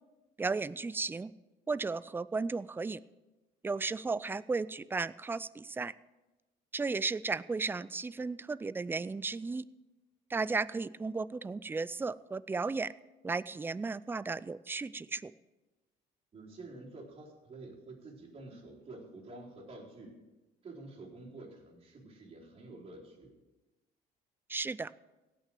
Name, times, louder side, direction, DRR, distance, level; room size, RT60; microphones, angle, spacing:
voice 1, 0.4-1.3 1.7-3.0 3.6-5.9 6.7-9.6 10.3-12.9 13.2-15.3 24.5-24.9, right 4 dB, 10° right, 18 dB, 0.4 m, -34 dB
voice 2, 16.3-20.3 20.6-23.4, right 2 dB, 35° right, -3 dB, 4.1 m, -49 dB
17.5 x 6.2 x 7.6 m, 1.1 s
cardioid pair, 110°, 17 cm